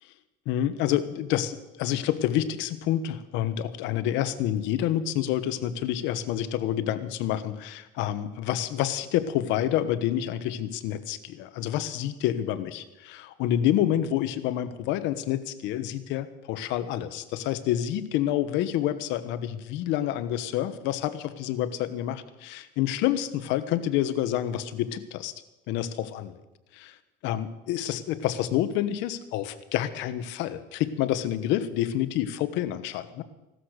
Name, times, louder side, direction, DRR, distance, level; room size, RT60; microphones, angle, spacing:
voice 1, 0.5-25.3 25.7-26.4 26.7-26.9 27.2-33.2, left 12 dB, 75° left, 12 dB, 1.3 m, -28 dB
17.0 x 13.0 x 6.6 m, 1.0 s
cardioid pair, 135°, 19 cm